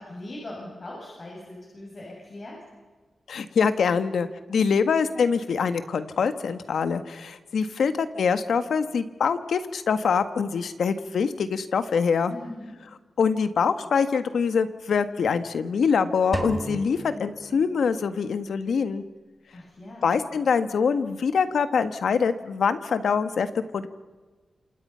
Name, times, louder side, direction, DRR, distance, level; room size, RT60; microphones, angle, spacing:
voice 1, 0.0-2.6 12.3-12.8 19.5-20.1, left 1 dB, 45° left, -3 dB, 7.5 m, -40 dB
voice 2, 3.3-12.3 13.2-19.0 20.0-23.5 23.7-23.9, left 6 dB, 90° left, 10 dB, 1.5 m, -24 dB
sound 1, 16.3-18.4, right 1 dB, 20° right, 3.1 m, -35 dB
28.0 x 27.5 x 5.7 m, 1.3 s
wide cardioid pair, 100°, 0 cm